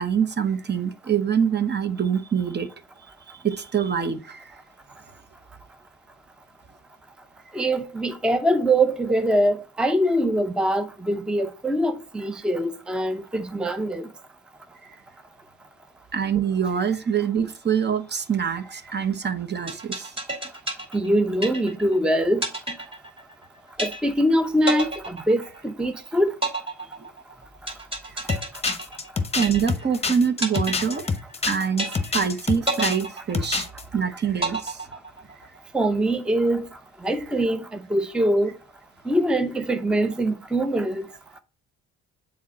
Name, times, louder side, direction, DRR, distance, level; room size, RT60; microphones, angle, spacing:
voice 1, 0.0-2.7 3.4-4.5 16.1-20.1 29.3-31.1 31.4-33.7 33.9-34.8, right 7 dB, 35° right, 0.9 m, -25 dB
voice 2, 7.5-14.1 20.9-22.4 23.8-26.3 35.7-36.7 37.0-38.5 39.1-41.1, right 1 dB, 5° right, 0.6 m, -23 dB
sound 1, 19.7-22.0 22.4-23.4 23.8-24.3 24.7-25.9 26.4-30.0 30.4-31.4 31.8-32.3 32.7-33.9 34.4-35.4, right 1 dB, 20° right, 2.7 m, -30 dB
sound 2, 28.3-33.0 33.3-33.8, left 4 dB, 20° left, 1.0 m, -27 dB
7.2 x 4.3 x 4.2 m
cardioid pair, 90°, 30 cm